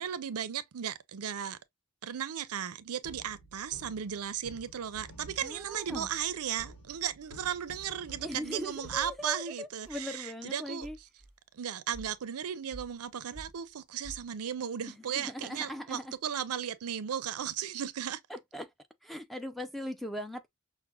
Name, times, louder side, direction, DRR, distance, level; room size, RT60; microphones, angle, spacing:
voice 1, 0.0-1.6 2.0-11.1 11.5-18.2, right 8 dB, 80° right, 0.5 m, -36 dB
sound 1, 3.0-9.0, equal, 75° left, 1.1 m, -52 dB
voice 2, 5.4-6.1 8.2-11.0 15.1-16.1 18.3-18.7 19.0-20.5, left 1 dB, ahead, 0.4 m, -40 dB
sound 2, 7.4-7.6 8.3-8.7 9.0-9.2 9.8-10.0 10.5-10.6 10.8-11.4 11.9-12.2 12.7-13.1 13.3-13.7 14.0-14.3, right 1 dB, 30° left, 1.7 m, -50 dB
5.9 x 2.1 x 2.2 m
head